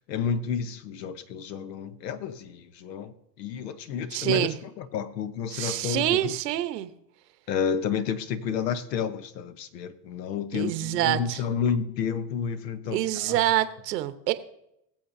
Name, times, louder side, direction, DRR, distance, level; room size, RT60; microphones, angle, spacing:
voice 1, 0.1-4.5 4.8-6.3 7.5-13.0 13.3-13.4, left 7 dB, 90° left, 1.1 m, -30 dB
voice 2, 4.1-4.6 5.5-6.9 10.5-11.4 12.9-14.3, right 14 dB, 85° right, 1.1 m, -26 dB
21.0 x 7.4 x 2.7 m
supercardioid pair, 120°, 48 cm